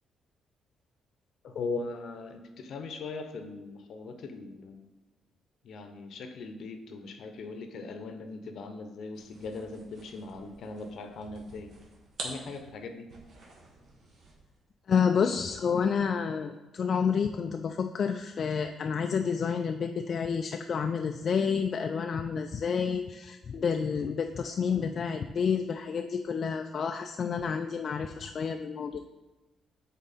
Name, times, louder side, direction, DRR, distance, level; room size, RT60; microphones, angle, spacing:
voice 1, 1.4-4.8 5.6-11.7 12.2-13.1, left 3 dB, 70° left, 7 dB, 0.7 m, -39 dB
sound 1, 9.1-14.5, right 2 dB, 65° right, 1.5 m, -47 dB
voice 2, 14.9-29.0, left 6 dB, 50° left, 5 dB, 0.3 m, -29 dB
7.3 x 4.0 x 4.2 m, 1.1 s
cardioid pair, 90°, 0 cm